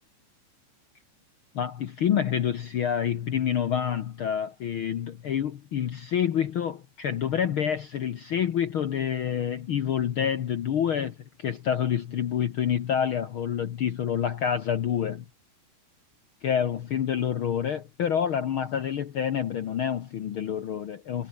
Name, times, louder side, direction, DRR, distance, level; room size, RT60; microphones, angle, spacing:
voice 1, 1.5-15.2 16.4-21.3, left 9 dB, 75° left, 1.2 m, -27 dB
omnidirectional pair, 4.0 m